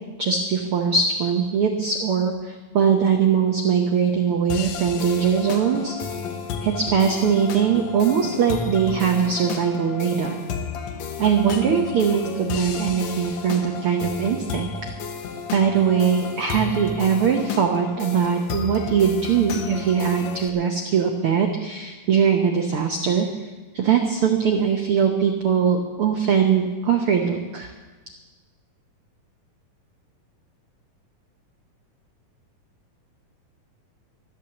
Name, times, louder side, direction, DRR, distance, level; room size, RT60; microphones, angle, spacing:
voice 1, 0.2-5.9 6.6-10.4 11.2-14.9 15.5-23.5 23.7-27.7, right 7 dB, 75° right, 3 dB, 1.2 m, -21 dB
sound 1, 4.5-20.5, left 5 dB, 65° left, 1.9 m, -32 dB
13.5 x 11.5 x 7.1 m, 1.3 s
omnidirectional pair, 4.0 m